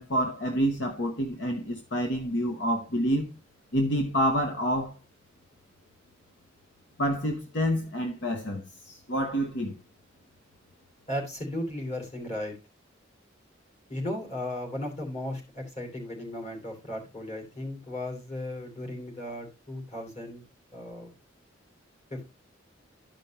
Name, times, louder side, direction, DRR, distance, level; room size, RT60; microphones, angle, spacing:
voice 1, 0.0-3.3 3.7-4.9 7.0-9.8, equal, 60° left, 1.0 m, -28 dB
voice 2, 11.1-12.5 13.9-20.4 20.7-21.1 22.1-22.3, left 1 dB, 35° left, 3.0 m, -36 dB
12.5 x 5.1 x 2.9 m
head